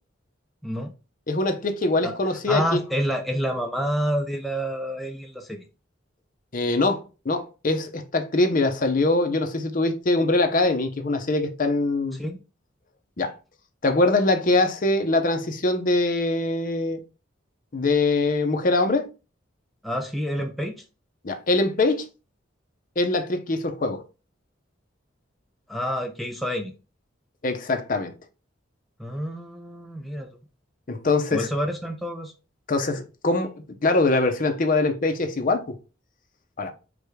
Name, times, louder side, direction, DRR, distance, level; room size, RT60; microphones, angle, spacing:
voice 1, 1.3-2.8 6.5-12.2 13.2-13.3 13.8-17.0 17.7-19.1 21.2-22.1 23.0-24.0 27.4-28.1 30.9-31.5 32.7-33.5 33.8-35.7 36.6-36.7, left 2 dB, 45° left, 0.7 m, -23 dB
voice 2, 2.5-5.6 12.1-12.4 19.8-20.8 25.7-26.7 29.0-30.3 31.3-32.3, equal, ahead, 0.4 m, -28 dB
4.8 x 2.3 x 4.8 m
head